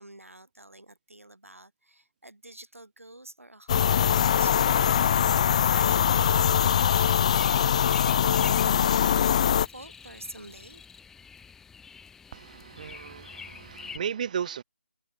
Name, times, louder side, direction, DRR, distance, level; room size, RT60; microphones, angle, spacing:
voice 1, 0.0-5.3 5.7-9.1 9.7-10.8, right 1 dB, 85° right, 6.9 m, -47 dB
sound 1, 3.7-9.7, left 9 dB, 30° left, 0.6 m, -22 dB
sound 2, 6.1-14.0, left 6 dB, 5° left, 5.7 m, -46 dB
voice 2, 12.3-14.6, right 8 dB, 35° right, 1.4 m, -35 dB
figure-of-eight pair, 150°, 7 cm